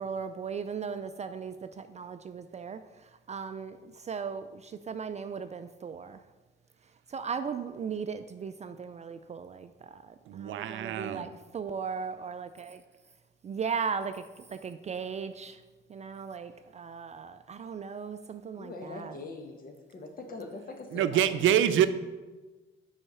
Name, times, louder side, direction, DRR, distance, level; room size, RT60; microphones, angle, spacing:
voice 1, 0.0-6.2 7.1-12.8 13.4-14.2 14.6-15.6 15.9-19.2, right 6 dB, 35° right, 9 dB, 0.4 m, -37 dB
voice 2, 10.3-11.3 20.9-21.9, right 10 dB, 80° right, 11 dB, 0.6 m, -25 dB
voice 3, 18.6-21.6, left 2 dB, 45° left, 4 dB, 1.4 m, -42 dB
6.9 x 5.7 x 5.5 m, 1.2 s
cardioid pair, 90°, 20 cm